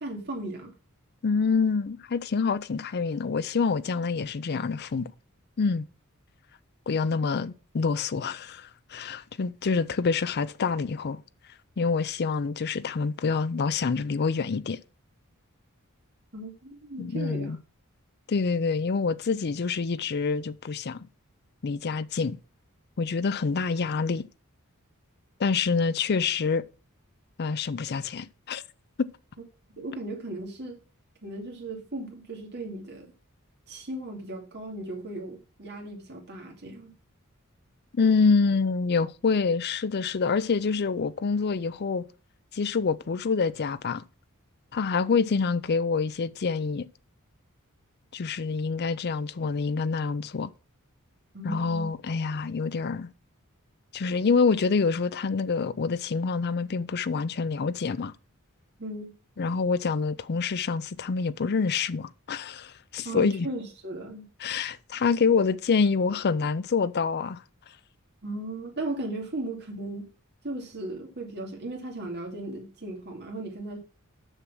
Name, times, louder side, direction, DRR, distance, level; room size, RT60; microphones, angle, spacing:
voice 1, 0.0-0.7 16.3-17.6 29.8-30.8 31.2-33.1 33.7-36.9 51.3-51.9 58.8-59.1 63.0-64.3 68.2-70.1 70.4-73.8, right 2 dB, 50° right, 2.4 m, -36 dB
voice 2, 1.2-5.1 5.6-5.8 6.9-11.2 11.8-14.8 17.0-17.6 18.3-21.1 21.6-22.4 23.0-24.2 25.4-26.6 27.4-28.6 29.0-29.1 37.9-42.0 42.5-44.0 44.7-46.8 48.1-50.5 51.4-53.1 53.9-58.1 59.4-63.5 64.4-67.4, left 5 dB, 50° left, 0.5 m, -26 dB
6.6 x 6.2 x 6.0 m
head